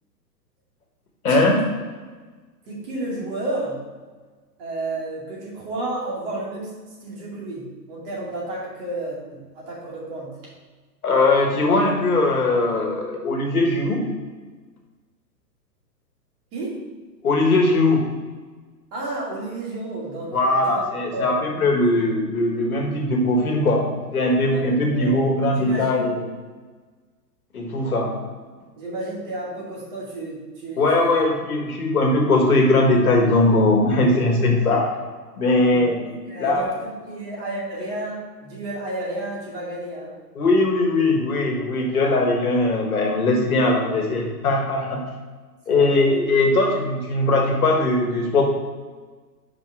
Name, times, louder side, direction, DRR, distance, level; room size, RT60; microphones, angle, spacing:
voice 1, 1.2-1.6 11.0-14.1 17.2-18.0 20.3-26.2 27.5-28.2 30.8-34.9 35.4-36.0 36.4-36.6 40.4-45.0 45.7-48.4, left 2 dB, 60° left, 1 dB, 1.6 m, -20 dB
voice 2, 2.7-3.8 4.6-9.2 9.5-10.3 16.5-16.8 18.9-20.8 21.1-21.3 22.7-22.8 24.5-26.1 28.8-31.2 33.9-34.3 35.6-35.9 36.3-40.1 43.9-44.0 45.7-46.1, right 2 dB, 35° right, -4 dB, 2.3 m, -32 dB
6.0 x 5.3 x 4.7 m, 1.4 s
figure-of-eight pair, 115°, 50 cm